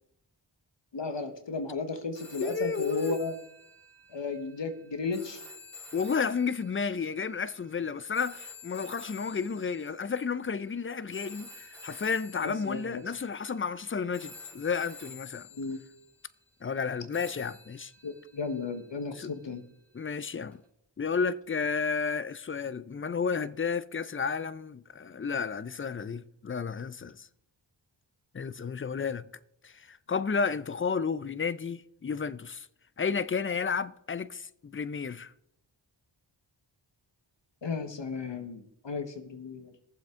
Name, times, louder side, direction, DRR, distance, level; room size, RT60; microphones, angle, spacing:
voice 1, 0.9-3.3 4.1-5.4 12.4-13.0 15.5-15.8 18.0-19.6 37.6-39.7, left 4 dB, 65° left, 1.2 m, -34 dB
sound 1, 2.2-10.4 11.1-13.8 14.1-16.3 17.1-19.4 20.5-20.6, left 2 dB, 5° left, 3.4 m, -50 dB
voice 2, 2.4-3.2 5.9-15.5 16.6-17.9 19.2-19.3 19.9-20.6 21.0-27.3 28.3-29.3 29.6-32.7 33.0-35.3, left 5 dB, 30° left, 0.5 m, -32 dB
19.5 x 7.4 x 3.7 m
wide cardioid pair, 50°, 47 cm